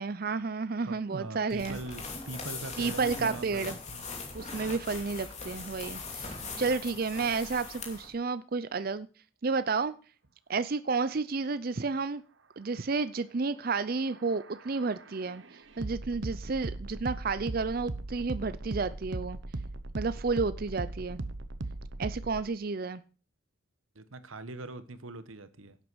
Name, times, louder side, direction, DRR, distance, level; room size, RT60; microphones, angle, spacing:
voice 1, 0.0-1.8 2.8-3.8 4.3-9.1 9.4-9.9 10.5-12.2 12.6-15.4 15.8-19.4 20.0-21.2 22.0-23.0, right 4 dB, 45° right, 0.5 m, -31 dB
voice 2, 0.9-4.1 6.2-6.8 23.9-25.8, right 2 dB, 85° right, 1.2 m, -42 dB
sound 1, 1.5-8.1, left 4 dB, 35° left, 2.7 m, -40 dB
sound 2, 13.8-22.4, right 2 dB, 65° right, 1.0 m, -39 dB
11.0 x 8.1 x 6.3 m
head